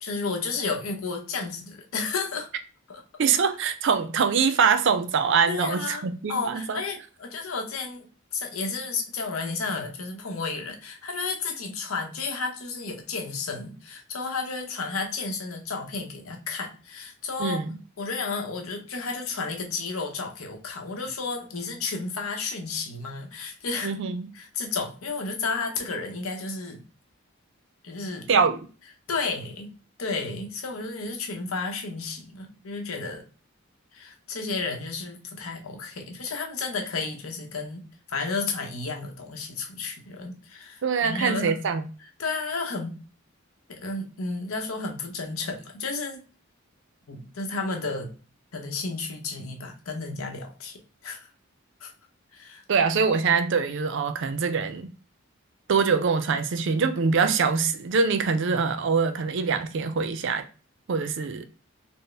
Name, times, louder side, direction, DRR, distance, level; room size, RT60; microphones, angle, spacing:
voice 1, 0.0-2.5 2.9-3.0 5.5-6.0 6.3-17.6 18.0-23.9 24.3-26.8 27.8-28.3 29.1-29.7 30.0-33.2 33.9-41.6 42.2-43.0 43.7-46.2 47.1-48.2 48.5-51.3 51.8-51.9 52.3-52.6, left 4 dB, 90° left, 0.8 m, -32 dB
voice 2, 3.2-6.8 17.4-17.8 23.8-24.3 28.3-28.6 40.8-41.8 52.7-54.9 55.7-60.4 60.9-61.5, right 5 dB, 60° right, 0.4 m, -24 dB
4.2 x 2.0 x 3.3 m
head